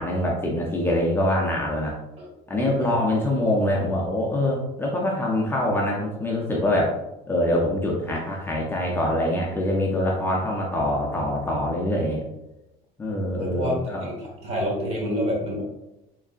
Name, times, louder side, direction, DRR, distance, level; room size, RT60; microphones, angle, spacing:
voice 1, 0.0-2.0 2.5-6.9 7.3-12.2 13.0-14.1, left 1 dB, 15° left, -3 dB, 0.5 m, -24 dB
voice 2, 2.6-3.0 13.2-15.6, equal, 40° right, -1 dB, 1.2 m, -28 dB
3.7 x 3.4 x 2.4 m, 0.92 s
cardioid pair, 150°, 17 cm